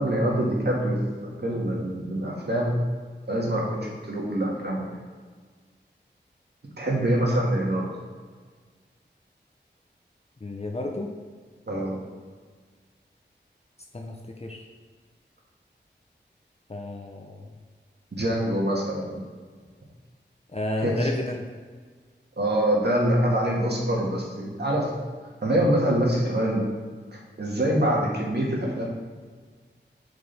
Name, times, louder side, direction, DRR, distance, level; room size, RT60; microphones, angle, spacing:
voice 1, 0.0-2.7 3.3-4.9 6.8-7.8 11.7-12.0 18.1-19.2 20.8-21.1 22.4-24.9 25.4-26.6 27.4-28.9, right 1 dB, 60° right, -3 dB, 1.9 m, -25 dB
voice 2, 10.4-11.1 13.9-14.1 14.4-14.6 16.7-17.4 20.5-21.4, left 2 dB, 35° left, 0 dB, 0.8 m, -31 dB
8.4 x 5.0 x 3.5 m, 1.5 s
wide cardioid pair, 65°, 19 cm